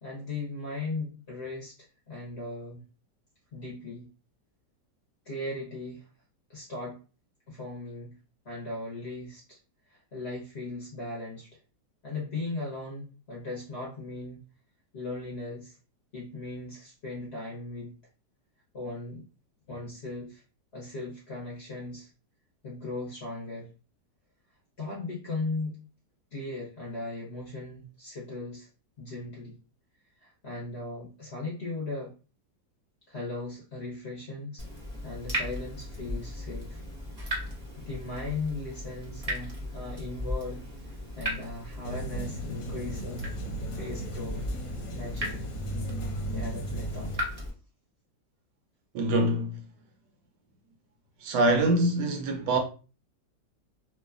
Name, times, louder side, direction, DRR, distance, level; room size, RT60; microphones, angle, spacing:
voice 1, 0.0-1.7 2.1-2.8 3.5-4.1 5.3-6.0 6.5-7.0 7.5-8.1 8.4-9.6 9.9-11.5 12.0-14.4 14.9-15.8 16.1-17.9 18.7-19.2 19.7-20.4 20.7-22.1 22.6-23.7 24.8-25.8 26.3-28.7 29.0-29.6 30.2-32.1 33.1-34.7 35.0-36.8 37.8-40.6 41.2-43.3 43.6-44.5 44.9-45.5 46.3-47.1, left 2 dB, 50° left, 0.8 m, -37 dB
Water tap faucet / Drip, 34.6-47.5, left 1 dB, 35° right, 0.6 m, -37 dB
sound 1, 41.8-47.2, right 1 dB, 70° left, 1.1 m, -36 dB
voice 2, 48.9-49.6 51.2-52.6, right 1 dB, 75° right, 1.2 m, -24 dB
3.1 x 2.1 x 2.3 m
omnidirectional pair, 1.9 m